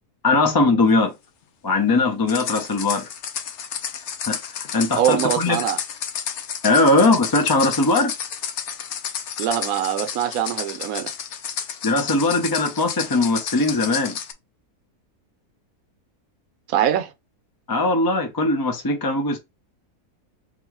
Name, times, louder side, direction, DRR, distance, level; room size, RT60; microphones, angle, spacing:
voice 1, 0.2-1.1 1.6-3.1 4.3-5.6 6.6-8.1 11.8-14.2 17.7-19.4, left 2 dB, 25° left, 0.5 m, -20 dB
sound 1, 2.3-14.3, left 8 dB, 60° left, 0.8 m, -31 dB
voice 2, 5.0-5.8 9.4-11.1 16.7-17.1, right 10 dB, 70° right, 1.1 m, -23 dB
3.8 x 2.4 x 4.6 m
omnidirectional pair, 1.6 m